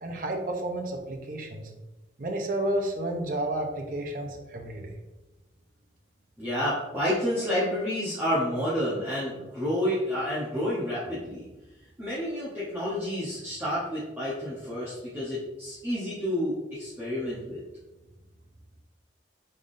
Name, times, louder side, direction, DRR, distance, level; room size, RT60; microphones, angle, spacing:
voice 1, 0.0-1.7 2.2-5.0, right 1 dB, 45° right, 2 dB, 0.6 m, -31 dB
voice 2, 6.4-11.4 12.0-17.6, equal, 10° right, -10 dB, 0.8 m, -29 dB
5.4 x 3.5 x 2.6 m, 1.1 s
head